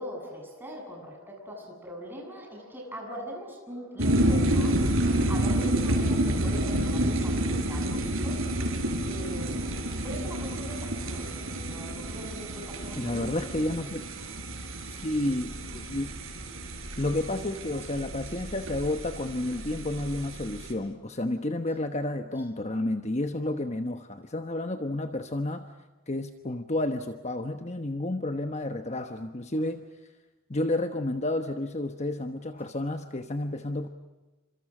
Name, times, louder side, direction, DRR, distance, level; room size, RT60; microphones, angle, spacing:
voice 1, 0.0-8.7 9.0-13.3 14.8-15.2 18.2-18.3, equal, 10° right, 0 dB, 7.7 m, -41 dB
sound 1, 4.0-20.7, right 1 dB, 80° right, 5.6 m, -29 dB
voice 2, 13.0-14.1 14.9-16.1 17.0-25.7 26.1-29.8 30.5-33.9, left 1 dB, 35° left, 7 dB, 1.1 m, -31 dB
30.0 x 26.0 x 6.2 m, 1.1 s
head